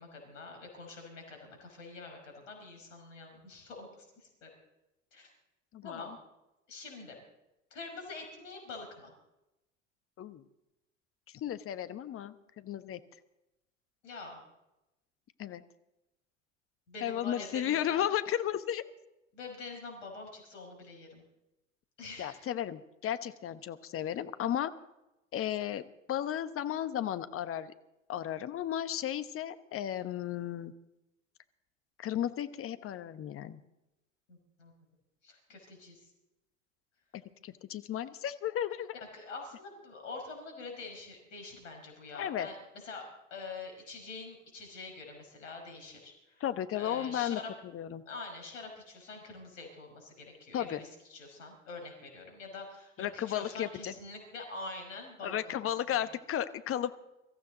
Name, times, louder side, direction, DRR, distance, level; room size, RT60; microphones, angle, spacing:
voice 1, 0.0-4.5 5.1-5.3 5.8-6.1 6.7-7.2 7.7-9.1 14.0-14.4 16.9-18.1 19.3-21.2 22.0-22.4 34.3-34.7 35.2-36.1 39.1-46.4 46.7-47.5 48.1-55.6 55.9-56.1, left 3 dB, 75° left, 2 dB, 5.6 m, -45 dB
voice 2, 5.7-6.1 10.2-10.4 11.3-13.0 15.4-15.6 17.0-18.8 22.2-24.7 25.3-25.8 26.1-27.7 28.1-30.7 32.0-33.6 37.1-39.0 42.1-42.5 46.4-47.4 47.7-48.0 50.5-50.8 53.0-53.9 55.2-56.9, left 11 dB, 35° left, 12 dB, 1.1 m, -34 dB
24.0 x 14.5 x 4.0 m, 0.93 s
figure-of-eight pair, 75°, 38 cm